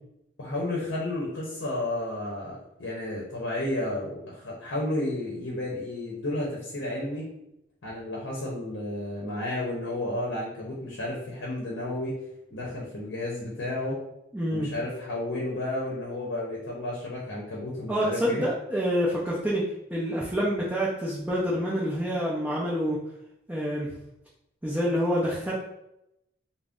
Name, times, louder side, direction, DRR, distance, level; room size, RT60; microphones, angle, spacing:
voice 1, 0.4-7.3 7.8-12.1 12.5-14.0 14.5-18.4, left 1 dB, 65° left, -4 dB, 0.7 m, -32 dB
voice 2, 14.3-14.7 17.9-19.6 19.9-23.0 23.5-23.9 24.6-25.5, equal, 10° right, -7 dB, 0.4 m, -27 dB
2.5 x 2.0 x 3.5 m, 0.83 s
head